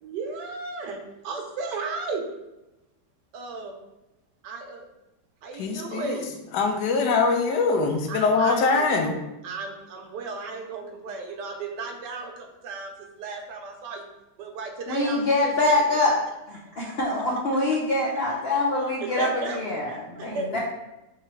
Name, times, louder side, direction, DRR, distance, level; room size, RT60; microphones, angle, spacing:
voice 1, 0.0-2.2 3.3-3.8 4.4-4.8 5.4-6.3 8.1-9.1 9.4-12.9 13.2-14.1 14.4-15.8 19.0-19.6 20.2-20.5, right 3 dB, 80° right, 3 dB, 1.3 m, -34 dB
voice 2, 5.5-6.3 6.5-9.1 20.5-20.6, left 4 dB, 80° left, 4 dB, 1.2 m, -23 dB
voice 3, 14.9-16.1 16.5-20.6, left 2 dB, 60° left, -4 dB, 0.6 m, -25 dB
3.7 x 3.1 x 4.3 m, 0.97 s
omnidirectional pair, 1.8 m